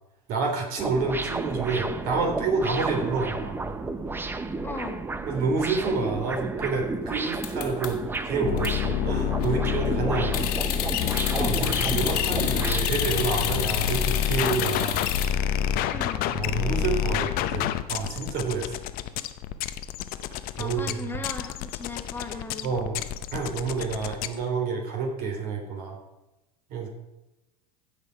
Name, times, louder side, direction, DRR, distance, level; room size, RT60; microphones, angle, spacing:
voice 1, 0.3-3.7 5.3-8.0 8.2-10.5 11.3-15.1 16.3-18.8 20.6-21.0 22.6-23.0 23.3-26.0 26.7-26.9, right 4 dB, 50° right, 2 dB, 3.5 m, -28 dB
sound 1, 0.8-12.8, right 3 dB, 10° right, 0.7 m, -32 dB
voice 2, 4.6-5.0 15.8-16.3 20.6-22.9, left 3 dB, 10° left, 3 dB, 1.8 m, -37 dB
sound 2, 7.3-8.2 8.6-8.7 9.2-9.6 10.3-15.3, left 10 dB, 75° left, 1.7 m, -31 dB
sound 3, 8.4-24.4, left 10 dB, 50° left, 0.8 m, -28 dB
16.0 x 5.9 x 4.8 m, 0.98 s
hypercardioid pair, 105°, 19 cm